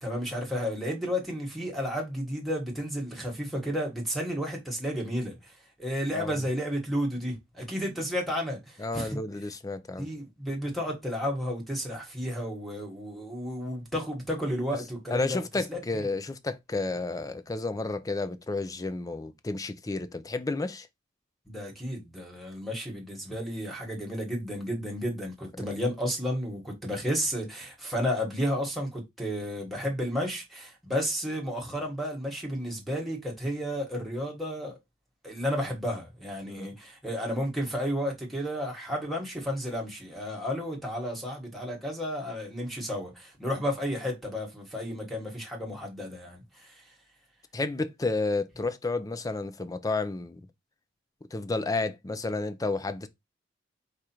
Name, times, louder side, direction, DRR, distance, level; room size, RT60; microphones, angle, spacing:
voice 1, 0.0-9.2 10.0-15.4 15.7-16.1 21.5-34.8 35.2-46.9, equal, ahead, 1.4 m, -32 dB
voice 2, 8.8-10.1 15.1-20.9 25.6-25.7 36.6-36.7 47.5-50.4 51.3-53.1, left 3 dB, 20° left, 0.4 m, -31 dB
4.9 x 2.5 x 4.3 m
head